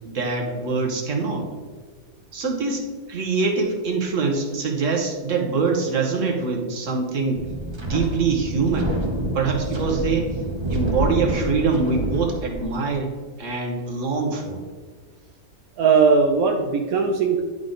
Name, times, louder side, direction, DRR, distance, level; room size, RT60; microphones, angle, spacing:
voice 1, 0.0-1.5 2.3-7.4 7.8-8.9 9.3-10.3 10.7-13.1 13.4-14.6, right 4 dB, 55° right, 1 dB, 1.4 m, -24 dB
Wind, 7.3-13.0, right 1 dB, 25° right, 0.7 m, -27 dB
voice 2, 15.8-17.4, right 5 dB, 70° right, 1 dB, 1.1 m, -18 dB
10.5 x 3.8 x 3.8 m, 1.5 s
omnidirectional pair, 1.6 m